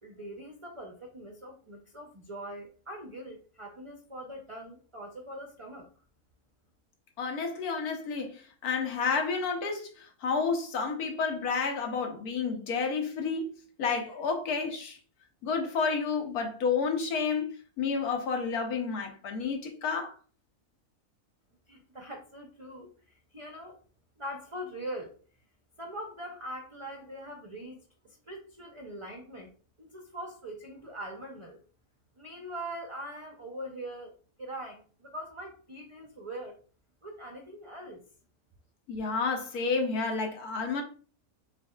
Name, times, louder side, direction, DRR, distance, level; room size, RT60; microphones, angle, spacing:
voice 1, 0.0-5.9 21.7-23.8 24.2-25.2 25.8-27.8 28.0-29.5 29.8-31.6 32.2-34.1 34.4-36.6 37.0-38.0, right 1 dB, 40° right, 0.4 m, -42 dB
voice 2, 7.2-13.5 13.8-15.0 15.4-20.1 38.9-40.8, left 5 dB, 85° left, 1.4 m, -30 dB
7.3 x 2.6 x 2.3 m
omnidirectional pair, 1.6 m